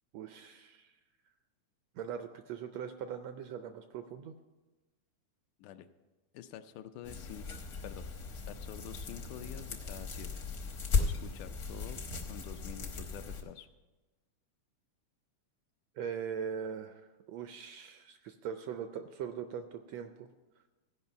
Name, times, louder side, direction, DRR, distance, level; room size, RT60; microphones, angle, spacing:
voice 1, 0.1-0.9 1.9-4.3 16.0-20.3, right 7 dB, 80° right, 8 dB, 1.5 m, -41 dB
voice 2, 6.3-7.5 7.8-10.4 11.0-12.0 12.3-13.7, left 10 dB, 85° left, 9 dB, 2.1 m, -48 dB
sound 1, 7.0-13.4, left 4 dB, 65° left, 0.9 m, -37 dB
15.0 x 5.5 x 6.8 m, 1.2 s
omnidirectional pair, 3.4 m